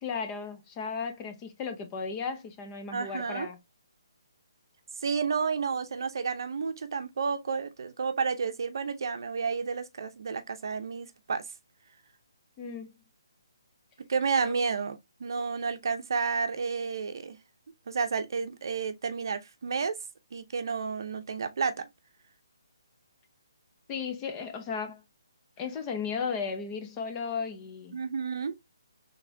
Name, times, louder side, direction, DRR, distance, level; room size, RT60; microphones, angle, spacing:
voice 1, 0.0-3.6 12.6-12.9 23.9-25.0 25.6-28.0, left 5 dB, 15° left, 0.6 m, -35 dB
voice 2, 2.9-3.5 5.0-11.4 14.1-17.4 17.9-20.0 20.3-21.9 27.9-28.5, right 5 dB, 55° right, 0.6 m, -31 dB
4.1 x 3.4 x 2.7 m
hypercardioid pair, 165°, 2 cm